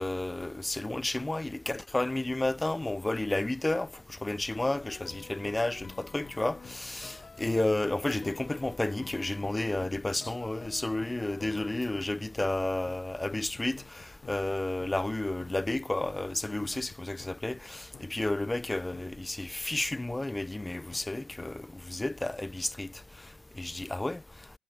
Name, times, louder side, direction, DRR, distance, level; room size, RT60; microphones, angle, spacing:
voice 1, 0.0-3.9 4.2-13.8 14.3-22.9 23.6-24.2, left 2 dB, 15° left, 0.4 m, -31 dB
sound 1, 4.6-17.6 17.9-18.1 18.4-18.5 18.9-19.1 19.4-19.5 19.9-20.1 20.4-20.5 20.9-21.0 21.4-21.5, left 5 dB, 40° left, 1.9 m, -49 dB
hypercardioid pair, 50°, 0 cm